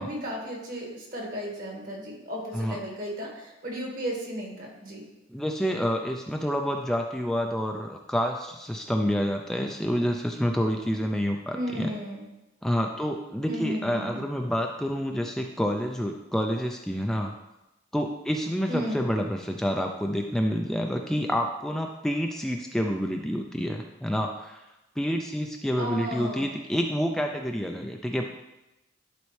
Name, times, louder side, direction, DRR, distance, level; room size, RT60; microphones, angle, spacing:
voice 1, 0.0-5.0 11.5-12.3 13.4-14.3 18.7-19.0 25.7-26.5, equal, 50° right, -1 dB, 1.8 m, -34 dB
voice 2, 5.3-11.9 12.6-17.3 17.9-24.6 25.0-28.3, equal, 5° left, 2 dB, 0.3 m, -28 dB
11.5 x 4.1 x 3.2 m, 0.98 s
head